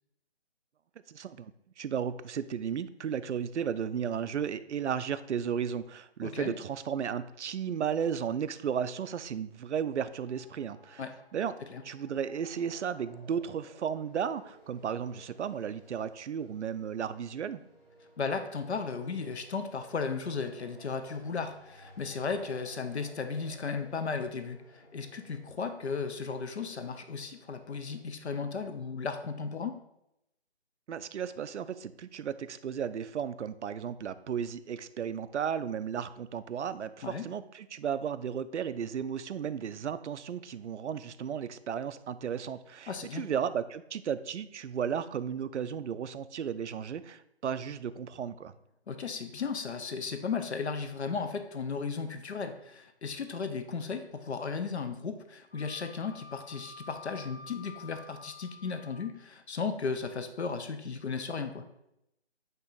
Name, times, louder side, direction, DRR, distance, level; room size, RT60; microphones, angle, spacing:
voice 1, 1.1-11.0 11.3-11.5 11.8-17.6 30.9-48.5, right 8 dB, 90° right, 13 dB, 0.5 m, -34 dB
voice 2, 6.2-6.5 11.0-11.1 11.7-11.8 18.2-29.8 37.0-37.2 42.9-43.2 48.9-61.6, left 5 dB, 75° left, 8 dB, 0.7 m, -35 dB
sound 1, 10.2-28.0, equal, 15° left, 1.3 m, -57 dB
Wind instrument woodwind instrument, 55.5-59.1, left 4 dB, 50° left, 1.9 m, -50 dB
8.8 x 3.0 x 3.8 m, 0.81 s
hypercardioid pair, 175°, 34 cm